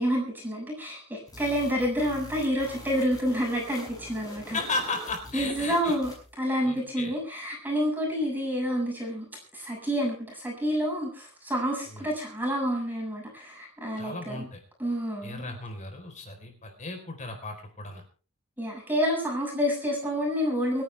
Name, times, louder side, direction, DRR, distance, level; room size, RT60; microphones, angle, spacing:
voice 1, 0.0-4.6 5.3-6.1 6.4-9.3 9.5-14.5 14.8-15.6 18.6-20.8, equal, 10° right, -2 dB, 7.0 m, -28 dB
sound 1, 1.3-6.3, left 1 dB, 20° left, 6.8 m, -45 dB
voice 2, 4.5-6.0 6.6-7.1 11.9-12.1 14.0-14.6 15.2-18.0, left 3 dB, 35° left, 5 dB, 4.2 m, -35 dB
29.0 x 10.5 x 3.5 m, 0.38 s
head